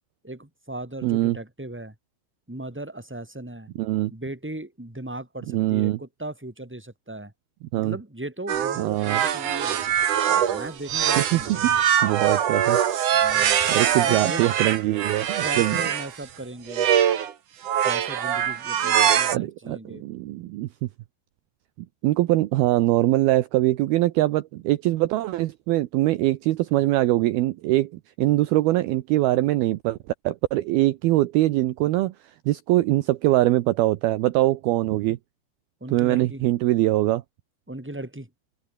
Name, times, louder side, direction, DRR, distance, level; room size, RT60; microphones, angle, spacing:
voice 1, 0.2-1.9 2.5-3.7 4.1-7.3 7.7-10.0 10.5-11.8 13.1-13.6 13.9-14.4 15.4-16.9 17.8-20.0 35.8-36.4 37.7-38.3, right 1 dB, 5° right, 4.1 m, -37 dB
voice 2, 1.0-1.4 3.8-4.1 5.5-6.0 7.7-8.0 8.8-9.2 11.2-12.8 13.4-15.8 19.3-20.7 22.0-30.0 30.2-32.1 32.5-35.2 35.9-37.2, right 16 dB, 75° right, 2.5 m, -23 dB
sound 1, 8.5-16.1 16.7-17.3 17.6-19.4, right 9 dB, 55° right, 3.0 m, -23 dB
open air
omnidirectional pair, 5.1 m